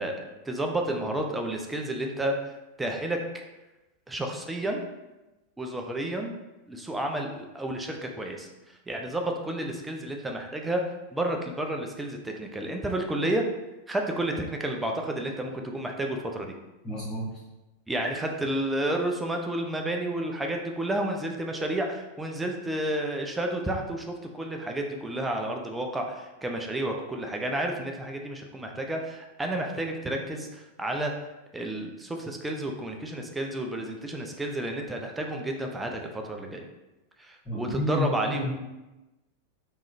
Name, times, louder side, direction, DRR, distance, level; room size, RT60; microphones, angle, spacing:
voice 1, 0.0-2.3 2.8-3.2 4.1-4.8 5.6-6.3 6.7-8.5 8.9-10.8 11.1-13.4 13.9-16.5 17.9-31.1 31.5-36.6 37.2-38.5, right 1 dB, 10° right, 2 dB, 0.4 m, -31 dB
voice 2, 16.8-17.3 37.4-38.5, left 1 dB, 15° left, -14 dB, 1.4 m, -30 dB
3.7 x 3.1 x 2.5 m, 1.0 s
figure-of-eight pair, 90°, 0 cm